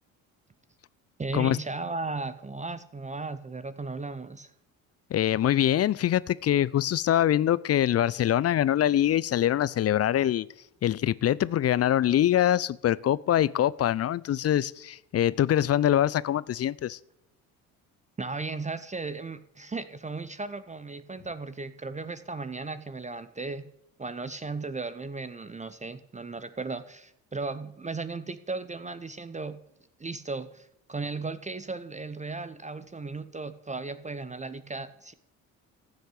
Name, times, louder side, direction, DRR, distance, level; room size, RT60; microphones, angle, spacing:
voice 1, 1.2-4.5 18.2-23.7 24.0-29.6 30.0-35.1, right 3 dB, 15° right, 0.8 m, -36 dB
voice 2, 5.1-10.5 10.8-17.0, left 11 dB, 35° left, 0.6 m, -24 dB
14.5 x 6.5 x 8.4 m
hypercardioid pair, 60°, 41 cm